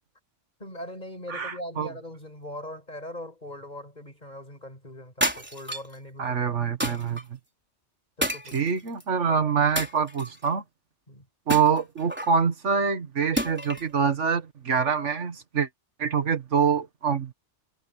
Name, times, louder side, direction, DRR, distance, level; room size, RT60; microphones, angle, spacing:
voice 1, 0.6-6.3 6.8-7.0 8.2-8.6 11.1-11.3, left 1 dB, 40° left, 6.2 m, -41 dB
voice 2, 1.3-1.9 6.2-7.4 8.5-10.6 11.5-15.7 16.0-17.3, right 6 dB, 80° right, 1.9 m, -25 dB
sound 1, 5.2-6.0 6.8-7.2 8.2-9.0 9.8-10.5 11.5-12.4 13.4-13.9, equal, 10° right, 3.8 m, -30 dB
omnidirectional pair, 1.2 m